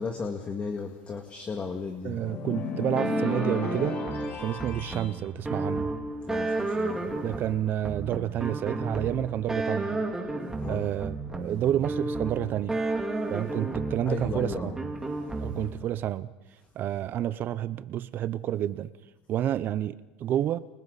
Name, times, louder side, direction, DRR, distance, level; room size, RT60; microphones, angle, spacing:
voice 1, 0.0-2.2 6.3-7.1 10.6-10.9 13.2-13.3 14.1-14.8 15.2-15.5, left 4 dB, 25° left, 4 dB, 2.1 m, -35 dB
voice 2, 2.0-4.0 4.4-5.9 7.2-10.0 10.7-12.8 13.3-14.8 15.4-16.3 16.8-18.9 19.3-20.6, right 11 dB, 45° right, 15 dB, 0.7 m, -29 dB
sound 1, 2.1-5.1, left 5 dB, 40° left, 5.9 m, -34 dB
sound 2, 3.0-15.9, right 2 dB, 10° right, 2.7 m, -32 dB
29.5 x 28.5 x 4.1 m, 1.1 s
supercardioid pair, 115°, 5 cm